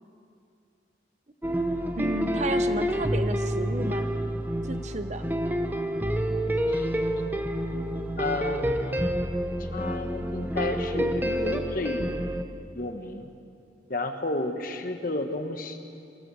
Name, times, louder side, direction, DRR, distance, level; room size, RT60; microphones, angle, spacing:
sound 1, 1.4-12.4, equal, 10° right, 0.8 m, -28 dB
voice 1, 2.0-4.1 4.6-5.3, right 2 dB, 40° right, 9 dB, 0.8 m, -32 dB
voice 2, 8.2-9.1 9.6-12.1 12.7-13.3 13.9-15.8, left 2 dB, 45° left, 6 dB, 1.4 m, -32 dB
23.5 x 14.5 x 7.8 m, 2.5 s
head